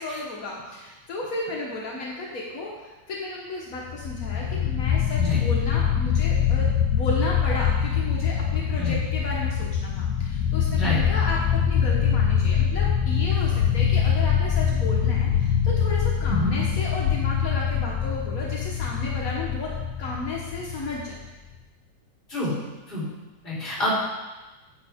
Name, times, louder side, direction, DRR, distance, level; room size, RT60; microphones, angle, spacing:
voice 1, 0.0-19.7 20.0-21.2 22.4-22.5, left 2 dB, 55° left, -4 dB, 0.9 m, -33 dB
sound 1, 3.9-21.3, left 8 dB, 85° left, 2.1 m, -24 dB
voice 2, 16.2-16.6 22.3-22.6 22.9-23.1 23.4-23.9, left 1 dB, 15° left, -8 dB, 3.8 m, -27 dB
9.8 x 9.4 x 3.6 m, 1.1 s
omnidirectional pair, 3.4 m